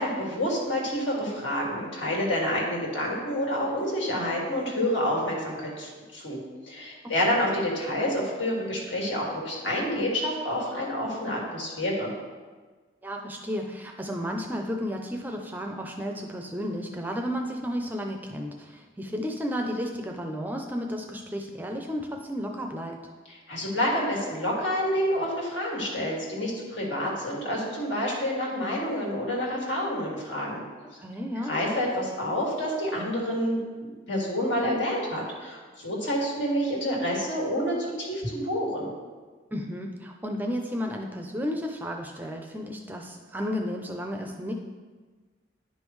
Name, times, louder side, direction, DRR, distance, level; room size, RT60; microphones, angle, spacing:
voice 1, 0.0-6.4 6.7-12.1 23.3-30.6 31.5-33.6 34.1-38.9, equal, 80° left, -3 dB, 2.0 m, -28 dB
voice 2, 13.0-23.0 31.0-31.5 39.5-44.5, equal, 10° right, 2 dB, 0.4 m, -33 dB
10.0 x 5.3 x 3.1 m, 1.4 s
head